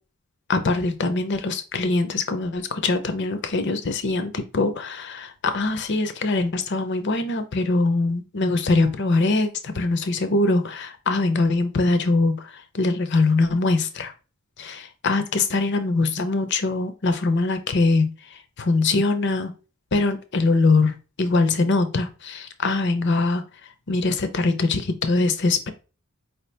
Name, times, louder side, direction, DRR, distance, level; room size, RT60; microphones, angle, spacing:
voice 1, 0.5-12.4 12.7-14.1 14.6-18.1 18.6-19.5 19.9-20.9 21.2-23.4 23.9-25.7, left 3 dB, 55° left, 9 dB, 0.6 m, -22 dB
4.7 x 2.8 x 3.3 m, 0.33 s
head